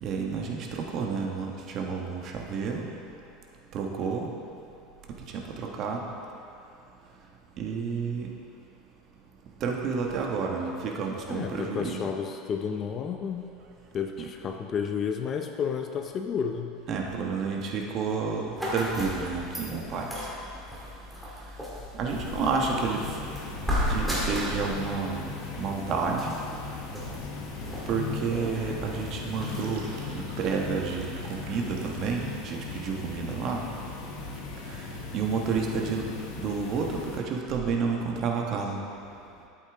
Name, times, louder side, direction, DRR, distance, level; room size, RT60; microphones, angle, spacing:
voice 1, 0.0-2.9 3.7-4.3 5.3-6.0 7.6-8.3 9.6-12.1 14.2-14.3 16.9-20.1 22.0-23.0 23.9-25.2 25.6-26.3 27.9-29.8 30.1-33.6 35.1-36.0 36.4-38.8, right 5 dB, 40° right, 0 dB, 1.2 m, -30 dB
voice 2, 11.3-13.5 13.9-16.7, left 6 dB, 30° left, 5 dB, 0.5 m, -31 dB
sound 1, 18.6-29.6, equal, 5° right, 2.2 m, -35 dB
sound 2, 22.1-37.2, left 4 dB, 80° left, 1.8 m, -38 dB
sound 3, 29.3-32.5, right 3 dB, 85° right, 1.4 m, -50 dB
12.0 x 8.4 x 3.6 m, 2.7 s
supercardioid pair, 145°, 0 cm